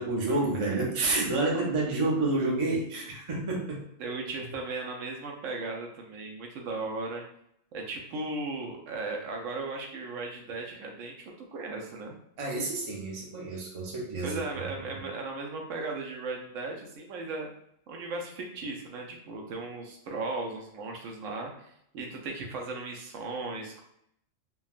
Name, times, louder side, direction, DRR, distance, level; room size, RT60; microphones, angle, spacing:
voice 1, 0.0-3.8 12.4-14.4, right 2 dB, 35° right, -2 dB, 0.5 m, -29 dB
voice 2, 4.0-7.2 7.7-12.2 14.2-17.5 17.9-23.8, right 3 dB, 85° right, 1 dB, 1.0 m, -36 dB
3.4 x 2.2 x 2.4 m, 0.73 s
omnidirectional pair, 1.3 m